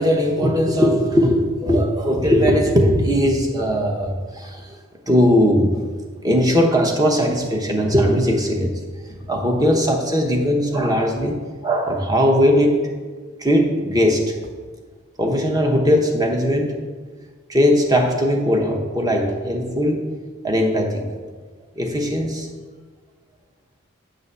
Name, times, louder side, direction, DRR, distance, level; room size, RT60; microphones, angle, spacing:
voice 1, 0.0-4.8 5.1-8.8 9.3-11.4 11.6-12.8 13.4-14.3 15.2-16.8 17.5-20.0 20.4-21.0 21.7-22.5, equal, 15° right, 1 dB, 1.0 m, -19 dB
8.8 x 3.9 x 6.8 m, 1.4 s
head